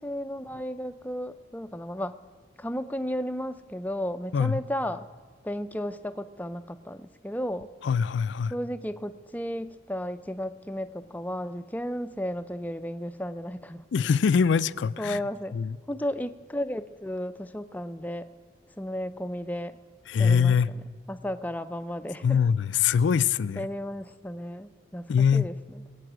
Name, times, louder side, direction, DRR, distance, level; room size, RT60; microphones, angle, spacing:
voice 1, 0.0-2.2 2.6-5.1 5.4-7.7 8.5-13.8 15.0-15.6 15.9-18.3 18.8-19.8 20.2-20.6 21.1-22.4 23.6-25.5, equal, 10° left, 0.4 m, -33 dB
voice 2, 7.8-8.5 13.9-15.2 15.5-15.8 20.1-20.7 22.2-23.7 25.1-25.5, left 6 dB, 75° left, 0.4 m, -23 dB
21.0 x 8.8 x 6.1 m
head